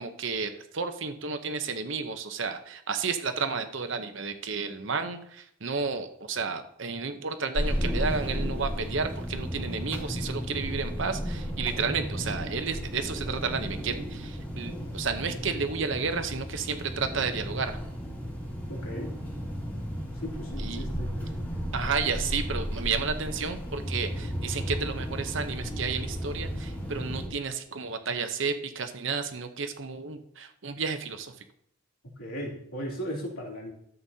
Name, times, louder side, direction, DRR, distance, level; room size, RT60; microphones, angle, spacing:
voice 1, 0.0-17.8 20.6-20.9 21.7-31.3, right 5 dB, 60° right, 8 dB, 0.8 m, -32 dB
sound 1, 7.5-27.3, equal, 10° left, 2.1 m, -34 dB
voice 2, 18.7-19.1 20.2-21.4 32.2-33.7, equal, 90° left, -3 dB, 2.9 m, -37 dB
13.5 x 7.9 x 2.8 m, 0.72 s
head